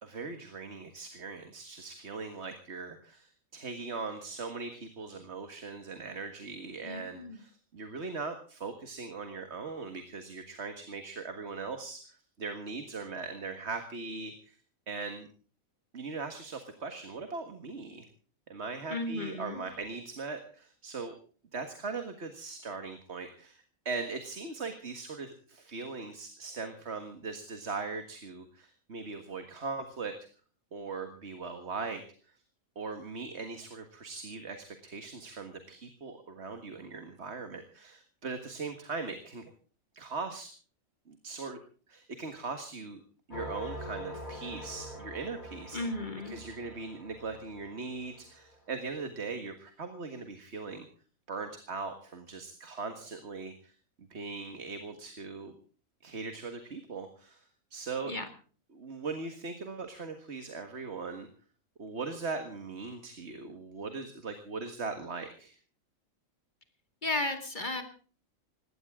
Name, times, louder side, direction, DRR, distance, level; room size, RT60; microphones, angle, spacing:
voice 1, 0.0-14.6 14.9-15.3 15.9-18.1 18.5-21.2 21.5-30.1 30.7-32.0 32.8-39.4 39.9-40.5 41.1-41.6 41.9-43.0 43.3-45.8 46.3-50.9 51.3-53.7 54.1-55.6 56.0-57.4 57.7-58.2 58.7-61.3 61.8-65.6, right 4 dB, 55° right, 7 dB, 1.9 m, -40 dB
voice 2, 6.8-7.4 18.9-19.6 45.7-46.4 58.1-58.3 67.0-67.8, left 2 dB, 35° left, 7 dB, 2.3 m, -34 dB
sound 1, 43.3-48.7, left 1 dB, 85° left, 5.5 m, -44 dB
20.0 x 17.0 x 3.7 m, 0.41 s
omnidirectional pair, 1.4 m